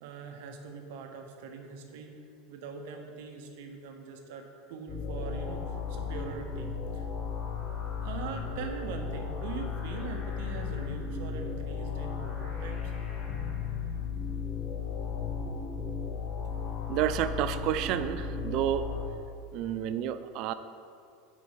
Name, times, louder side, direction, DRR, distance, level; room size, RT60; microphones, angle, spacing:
voice 1, 0.0-2.1 2.5-7.1 8.0-12.9, right 5 dB, 70° right, 4 dB, 1.0 m, -42 dB
sound 1, 4.9-19.0, left 5 dB, 40° left, 1.5 m, -35 dB
voice 2, 16.9-18.9 19.5-20.5, right 11 dB, 55° right, 12 dB, 0.3 m, -30 dB
6.2 x 5.3 x 5.6 m, 2.3 s
supercardioid pair, 120°, 0 cm